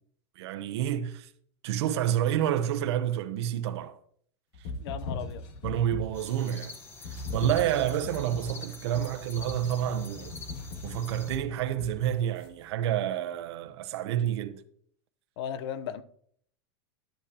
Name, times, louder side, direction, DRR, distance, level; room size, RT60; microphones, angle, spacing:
voice 1, 0.4-1.3 1.6-4.0 5.6-6.7 7.1-10.3 10.8-14.6, right 11 dB, 75° right, 0.9 m, -29 dB
sound 1, 4.5-6.3 7.0-12.5, left 3 dB, 55° left, 1.9 m, -39 dB
voice 2, 4.8-5.4 15.4-16.0, left 8 dB, 70° left, 0.8 m, -36 dB
sound 2, 6.1-11.4, left 3 dB, 15° left, 1.1 m, -46 dB
11.5 x 8.5 x 2.9 m
supercardioid pair, 145°, 14 cm